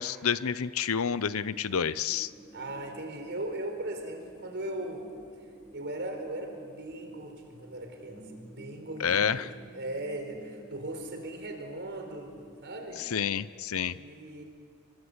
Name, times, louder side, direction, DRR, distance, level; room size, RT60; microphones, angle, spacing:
voice 1, 0.0-2.3 9.0-9.5 13.1-13.9, left 7 dB, 70° left, 16 dB, 0.7 m, -29 dB
sound 1, 2.1-13.0, equal, 5° left, 3.7 m, -52 dB
voice 2, 2.5-5.1 5.7-13.0 13.9-14.4, right 1 dB, 55° right, 4 dB, 4.8 m, -38 dB
28.0 x 25.5 x 8.1 m, 2.1 s
head